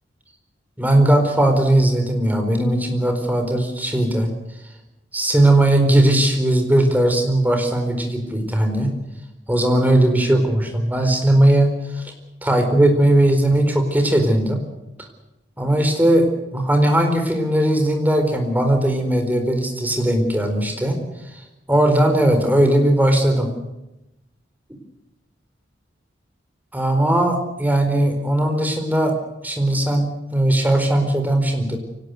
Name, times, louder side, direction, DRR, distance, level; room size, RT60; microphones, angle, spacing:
voice 1, 0.8-4.3 5.1-8.9 9.5-12.0 12.4-14.6 15.6-21.0 21.7-23.5 26.7-29.1 29.4-31.8, right 1 dB, 10° right, 4 dB, 4.3 m, -18 dB
24.5 x 18.5 x 8.1 m, 0.93 s
head